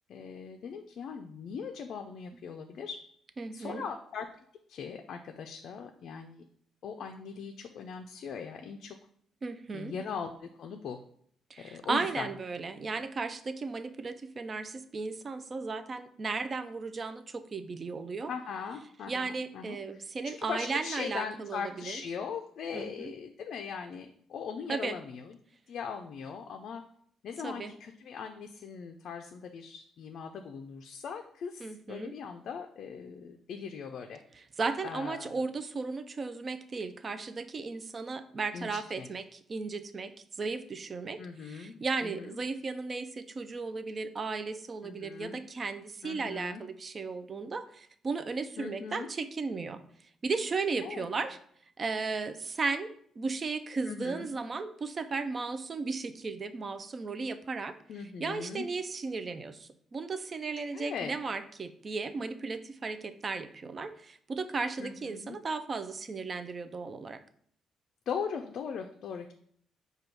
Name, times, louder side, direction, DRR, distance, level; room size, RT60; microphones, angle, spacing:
voice 1, 0.1-3.0 3.5-4.3 4.7-6.5 6.8-9.0 9.7-11.0 11.6-12.3 18.3-25.4 25.7-26.8 27.2-34.2 34.8-35.4 38.5-39.1 41.2-42.4 44.8-45.4 46.0-46.6 48.6-49.1 50.8-51.1 53.9-54.3 57.9-58.7 60.7-61.1 64.8-65.4 68.1-69.3, left 6 dB, 65° left, 4 dB, 0.3 m, -40 dB
voice 2, 3.4-3.8 9.4-9.9 11.5-18.3 19.1-22.0 22.7-23.1 24.7-25.0 27.4-27.7 31.6-32.1 34.4-49.8 50.2-51.4 51.8-57.8 58.2-67.2, right 4 dB, 40° right, 10 dB, 0.4 m, -35 dB
5.0 x 2.3 x 4.4 m, 0.63 s
cardioid pair, 90°, 0 cm